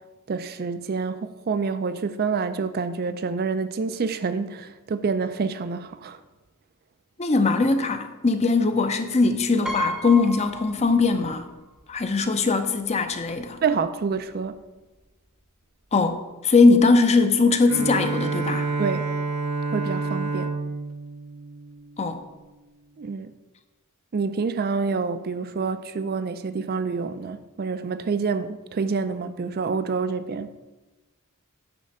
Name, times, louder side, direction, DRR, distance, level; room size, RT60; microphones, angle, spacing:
voice 1, 0.3-6.2 13.6-14.6 18.8-19.1 19.7-20.6 23.0-23.3 24.1-30.5, right 5 dB, 45° right, 0.4 m, -27 dB
voice 2, 7.2-11.5 11.9-13.6 15.9-18.6 22.0-22.2, left 3 dB, 30° left, 0.6 m, -20 dB
Piano, 9.7-11.5 11.8-11.9 13.1-13.2 13.4-13.7, equal, ahead, 0.8 m, -32 dB
Bowed string instrument, 17.7-22.4, right 3 dB, 80° right, 0.7 m, -29 dB
9.1 x 3.3 x 6.5 m
head